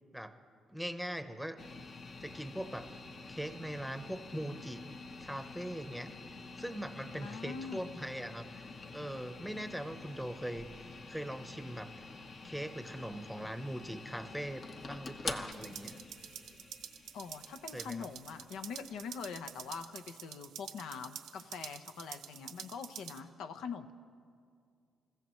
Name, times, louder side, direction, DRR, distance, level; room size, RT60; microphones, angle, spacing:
voice 1, 0.7-1.6 2.2-2.9 3.3-4.9 5.2-6.1 6.6-11.9 12.4-16.0 17.7-18.1, equal, ahead, 9 dB, 0.9 m, -41 dB
sound 1, 1.6-19.7, left 3 dB, 50° left, 1.1 m, -48 dB
voice 2, 7.1-7.9 17.1-23.9, left 6 dB, 80° left, 9 dB, 0.7 m, -43 dB
sound 2, 15.5-23.2, right 10 dB, 90° right, 0.8 m, -48 dB
27.5 x 15.0 x 3.1 m, 2.2 s
cardioid pair, 90°, 0 cm